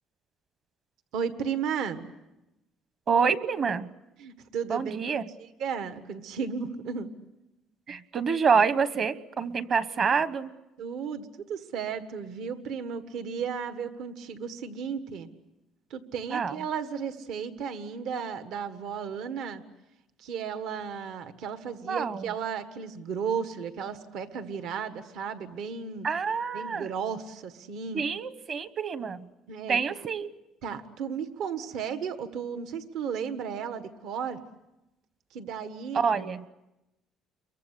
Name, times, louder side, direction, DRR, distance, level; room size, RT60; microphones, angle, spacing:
voice 1, 1.1-2.0 4.2-5.0 5.4-7.1 10.8-15.3 15.9-19.6 20.2-26.1 26.5-28.0 29.5-29.8 30.6-34.4 35.3-36.0, right 7 dB, 70° right, 9 dB, 1.5 m, -34 dB
voice 2, 3.1-3.9 4.7-5.2 7.9-10.5 16.3-16.5 21.9-22.3 26.0-26.9 27.9-29.3 29.7-30.3 35.9-36.4, right 6 dB, 40° right, 14 dB, 1.1 m, -27 dB
29.0 x 23.0 x 8.3 m, 0.96 s
cardioid pair, 145°, 0 cm